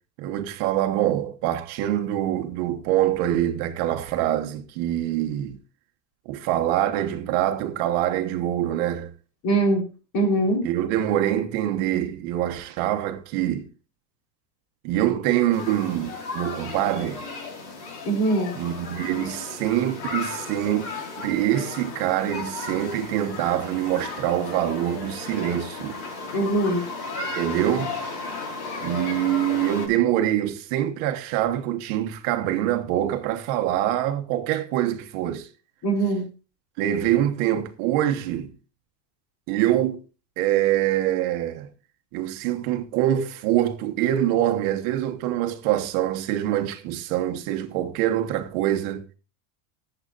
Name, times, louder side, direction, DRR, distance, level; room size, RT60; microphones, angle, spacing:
voice 1, 0.2-5.6 6.2-9.1 10.6-13.7 14.8-17.2 18.6-20.9 21.2-26.0 27.3-27.9 28.8-35.5 36.8-38.5 39.5-40.0 40.4-41.7 42.1-49.0, right 12 dB, 50° right, 1.3 m, -25 dB
voice 2, 9.4-9.8 10.1-10.6 18.0-18.5 26.3-26.8 35.8-36.2, right 2 dB, 40° left, 4.2 m, -22 dB
sound 1, 15.5-29.9, left 3 dB, 65° left, 4.5 m, -35 dB
20.5 x 8.0 x 2.6 m
cardioid pair, 175°, 48 cm